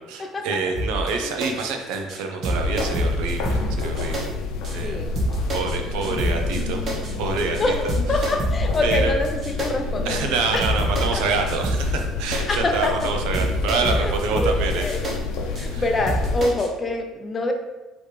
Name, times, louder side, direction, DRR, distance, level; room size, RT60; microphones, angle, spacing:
voice 1, 0.1-4.3 4.7-5.1 5.5-6.8 7.2-7.7 8.1-8.2 8.8-9.1 10.0-14.9 15.7-15.8, right 4 dB, 90° right, 4 dB, 0.6 m, -27 dB
sound 1, 0.7-1.1 1.4-1.7 1.9-2.2 2.4-4.2 4.6-4.7 5.1-5.7 6.0-6.6 6.9-7.1 7.4-7.6 7.9-9.7 10.1-10.2 10.6-11.2 11.5-12.0 12.3-12.6 12.8-13.1 13.3-15.1 15.5-15.6 16.1-16.7, equal, 35° right, 1.0 m, -26 dB
sound 2, 2.5-16.4, left 4 dB, 80° left, 0.6 m, -29 dB
voice 2, 4.8-5.2 5.5-6.1 7.6-9.3 9.6-10.2 10.5-10.6 11.1-11.2 12.5-12.9 14.0-15.0 15.6-17.5, left 2 dB, 20° left, 4 dB, 0.5 m, -26 dB
4.8 x 3.0 x 3.2 m, 1.1 s
cardioid pair, 155°, 0 cm